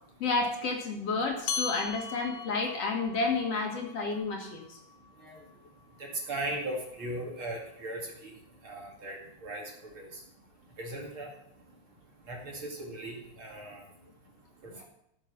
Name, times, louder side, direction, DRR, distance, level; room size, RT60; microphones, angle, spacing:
voice 1, 0.2-4.8 14.7-14.8, left 3 dB, 60° left, 1 dB, 2.8 m, -31 dB
sound 1, 1.5-6.3, left 6 dB, 90° left, 2.3 m, -40 dB
voice 2, 6.3-8.3 8.6-9.2 9.4-9.6 10.0-10.1 10.8-11.3 12.3-13.8 14.6-14.8, right 1 dB, 45° right, -1 dB, 2.8 m, -38 dB
14.0 x 6.8 x 6.1 m, 0.76 s
omnidirectional pair, 3.4 m